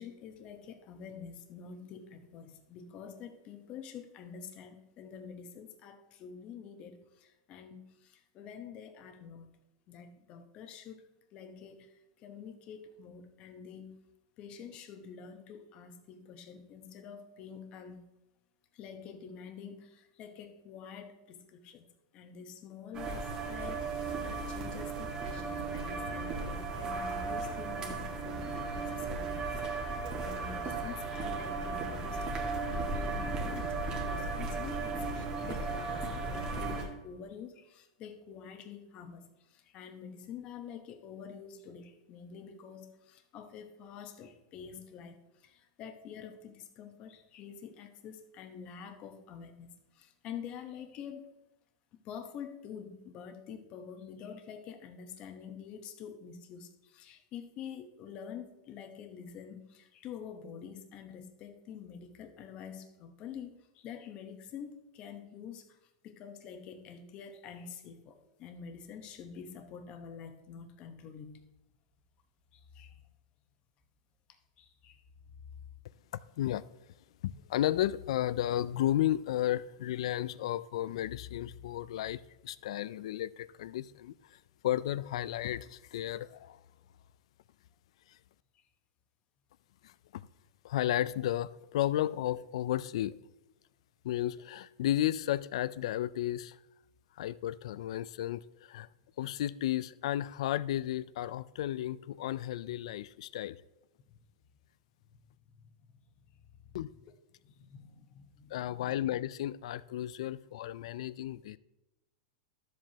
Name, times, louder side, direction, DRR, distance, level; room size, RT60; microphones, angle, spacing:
voice 1, 0.0-9.5 9.9-14.0 14.4-18.0 18.7-21.9 22.1-29.5 30.2-32.3 32.7-51.3 52.0-65.8 66.0-71.4 72.5-73.0 74.6-75.0 105.6-105.7 106.6-106.7 107.4-108.9, left 7 dB, 35° left, 0.9 m, -47 dB
sound 1, 22.9-36.8, right 3 dB, 25° right, 1.6 m, -35 dB
voice 2, 77.2-86.6 88.1-88.2 89.8-90.3 90.6-93.2 94.0-96.6 97.2-98.9 99.2-103.6 106.7-106.9 108.5-111.6, left 13 dB, 70° left, 0.4 m, -33 dB
12.5 x 7.6 x 2.8 m
supercardioid pair, 150°, 3 cm